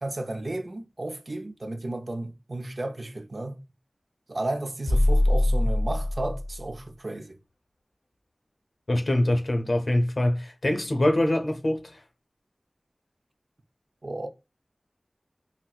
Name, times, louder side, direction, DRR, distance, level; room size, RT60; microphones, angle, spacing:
voice 1, 0.0-3.6 4.3-7.4 14.0-14.3, right 2 dB, 55° right, 0.5 m, -33 dB
sound 1, 4.9-6.7, left 1 dB, 90° left, 0.8 m, -23 dB
voice 2, 8.9-12.0, left 1 dB, 60° left, 0.7 m, -24 dB
4.0 x 2.0 x 2.3 m
wide cardioid pair, 60°, 0 cm